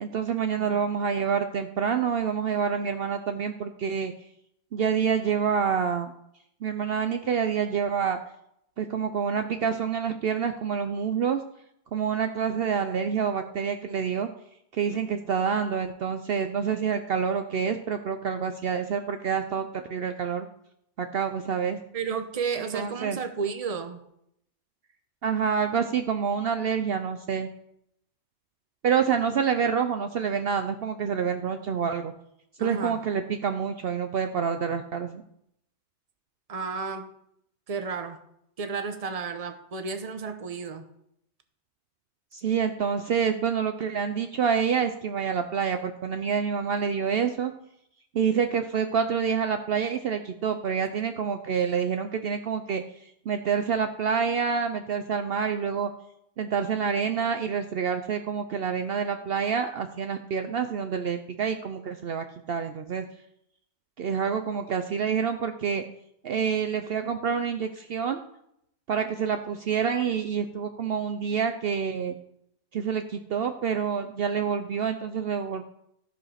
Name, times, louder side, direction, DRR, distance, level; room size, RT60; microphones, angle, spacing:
voice 1, 0.0-4.1 4.7-6.1 6.6-8.2 8.8-11.4 11.9-14.3 14.7-20.5 21.0-21.8 22.7-23.2 25.2-27.5 28.8-32.1 32.6-35.2 42.3-47.5 48.1-52.8 53.3-55.9 56.4-63.0 64.0-65.8 66.2-68.2 68.9-72.1 72.7-75.6, right 7 dB, 60° right, 7 dB, 0.8 m, -27 dB
voice 2, 21.9-24.0 32.6-33.0 36.5-37.1 37.7-38.2 38.6-40.9, right 5 dB, 35° right, 8 dB, 0.9 m, -32 dB
14.0 x 4.9 x 5.7 m, 0.76 s
omnidirectional pair, 1.2 m